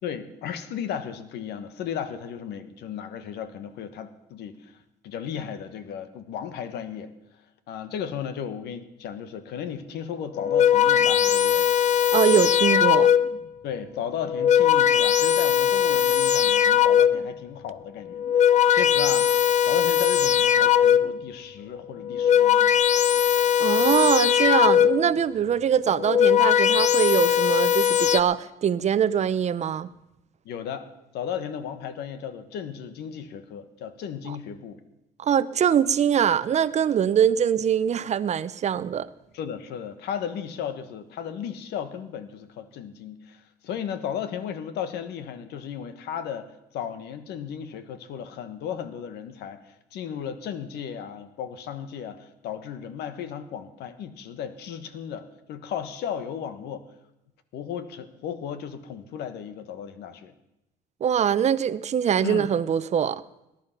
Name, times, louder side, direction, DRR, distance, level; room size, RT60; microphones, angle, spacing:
voice 1, 0.0-4.7 5.0-7.1 7.7-11.7 13.6-19.3 19.7-22.7 30.4-30.9 31.1-34.8 37.2-37.3 39.3-49.6 49.9-56.9 57.5-60.3 62.2-62.5, left 8 dB, 80° left, 11 dB, 1.4 m, -35 dB
sound 1, 10.3-13.5 14.2-17.4 18.1-21.3 22.0-25.2 25.9-28.2, left 9 dB, 45° left, 0.6 m, -20 dB
voice 2, 12.1-13.1 23.6-29.9 34.3-34.4 35.2-39.1 61.0-63.2, right 8 dB, 40° right, 16 dB, 0.7 m, -23 dB
19.5 x 11.0 x 5.9 m, 0.90 s
cardioid pair, 110°, 17 cm